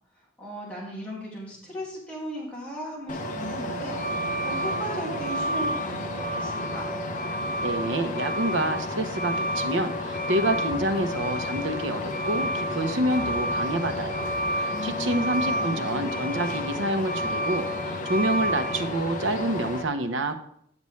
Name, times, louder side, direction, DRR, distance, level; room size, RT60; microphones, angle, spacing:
voice 1, 0.1-6.9 14.7-16.1, equal, 5° left, -6 dB, 2.1 m, -37 dB
Truck, 3.1-19.8, left 1 dB, 45° left, 0.9 m, -29 dB
voice 2, 7.6-20.4, right 1 dB, 85° right, 7 dB, 0.8 m, -28 dB
9.6 x 6.9 x 3.2 m, 0.68 s
head